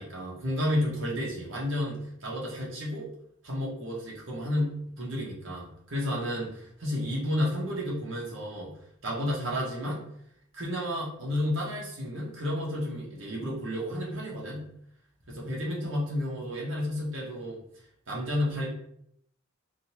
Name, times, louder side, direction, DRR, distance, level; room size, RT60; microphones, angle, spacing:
voice 1, 0.0-3.1 3.4-8.7 9.0-10.0 10.5-14.6 15.3-17.6 18.1-18.7, left 1 dB, 70° right, -4 dB, 1.2 m, -31 dB
3.7 x 2.4 x 2.9 m, 0.70 s
head